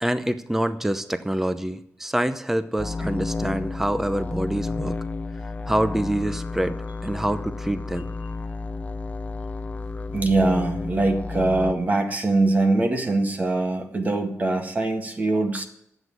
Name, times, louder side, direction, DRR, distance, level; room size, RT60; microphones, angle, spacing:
voice 1, 0.0-5.0 5.7-8.1, right 1 dB, 5° right, 11 dB, 0.7 m, -26 dB
sound 1, 2.8-11.7, left 3 dB, 30° left, 0.7 m, -31 dB
voice 2, 10.1-15.7, right 2 dB, 35° right, 4 dB, 1.8 m, -23 dB
10.5 x 8.1 x 9.4 m, 0.75 s
wide cardioid pair, 120°, 5 cm